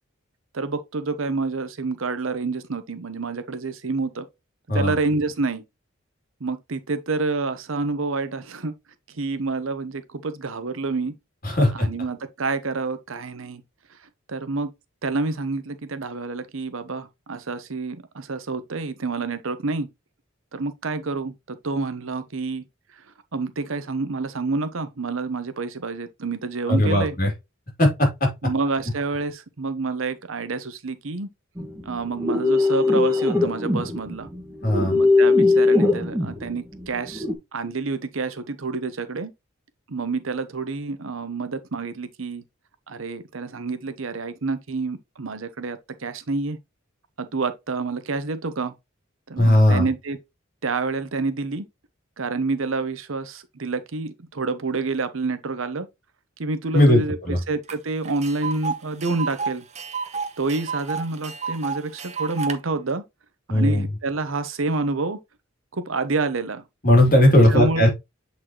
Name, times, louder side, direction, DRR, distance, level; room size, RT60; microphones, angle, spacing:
voice 1, 0.5-4.3 4.7-5.6 6.4-8.7 9.1-11.1 11.7-13.6 13.9-14.0 14.3-14.7 15.0-19.9 20.5-22.6 23.3-27.2 28.4-31.3 31.8-34.3 34.9-37.3 37.5-39.3 39.9-42.4 42.9-46.6 47.2-48.7 49.3-50.2 50.6-51.7 52.2-55.9 56.4-59.6 60.4-63.0 63.5-65.2 65.7-66.6 67.5-67.9, right 3 dB, 80° right, 0.8 m, -28 dB
voice 2, 11.4-11.9 26.7-27.3 27.8-28.3 34.6-35.0 49.4-49.9 56.7-57.0 57.3-57.4 63.5-63.9 66.8-67.9, left 1 dB, 45° left, 2.8 m, -17 dB
sound 1, 31.6-37.3, left 3 dB, 15° right, 1.6 m, -20 dB
Tick, 57.7-57.8 58.0-62.6, right 5 dB, 35° right, 0.8 m, -31 dB
7.9 x 4.1 x 3.0 m
head